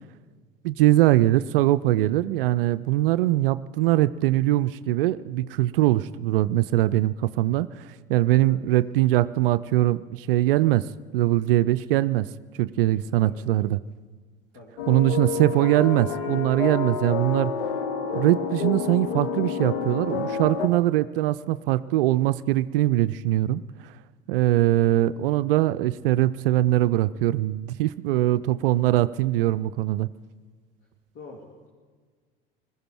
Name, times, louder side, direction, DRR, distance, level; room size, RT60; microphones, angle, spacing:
voice 1, 0.6-10.9 11.1-12.3 12.6-13.8 14.9-17.5 18.1-23.6 24.3-30.1, right 15 dB, 70° right, 16 dB, 0.5 m, -22 dB
voice 2, 14.5-15.1 15.4-15.7 31.1-31.7, left 3 dB, 50° left, -2 dB, 2.7 m, -46 dB
sound 1, 14.8-20.7, left 6 dB, 75° left, 1.4 m, -29 dB
20.5 x 15.5 x 4.5 m, 1.5 s
figure-of-eight pair, 70°, 29 cm